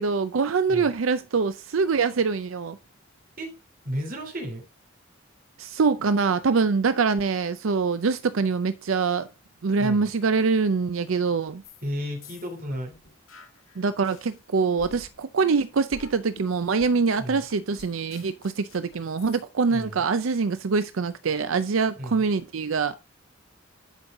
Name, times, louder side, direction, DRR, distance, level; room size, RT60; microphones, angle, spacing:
voice 1, 0.0-2.8 5.6-9.3 9.6-11.6 13.8-23.0, right 4 dB, 75° right, 0.5 m, -24 dB
voice 2, 3.8-4.6 9.8-10.1 11.8-12.9 17.2-17.4 19.7-20.0 22.0-22.3, equal, 45° right, 3.0 m, -33 dB
sound 1, 11.6-11.9 12.2-14.4 14.8-19.4, left 3 dB, 85° left, 1.8 m, -49 dB
11.0 x 5.5 x 3.7 m
head